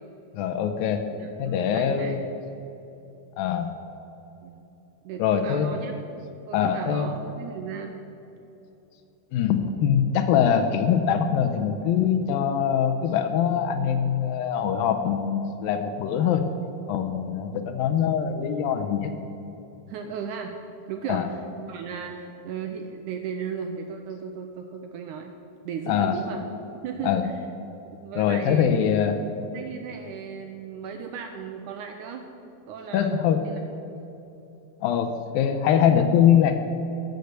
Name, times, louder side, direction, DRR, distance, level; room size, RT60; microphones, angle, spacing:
voice 1, 0.3-1.0 1.4-2.2 3.4-3.7 5.2-5.7 6.5-7.1 9.3-16.4 16.9-19.1 21.1-21.3 25.9-26.2 27.0-27.3 28.2-29.2 32.9-33.4 34.8-36.6, left 8 dB, 80° left, 7 dB, 2.3 m, -23 dB
voice 2, 1.1-2.2 4.4-4.6 5.0-5.9 6.5-8.0 19.9-20.6 20.9-25.3 25.6-26.4 26.8-27.3 28.0-28.7 29.2-32.2 32.7-33.6, right 6 dB, 85° right, 4 dB, 1.8 m, -36 dB
13.5 x 6.6 x 8.0 m, 3.0 s
omnidirectional pair, 4.4 m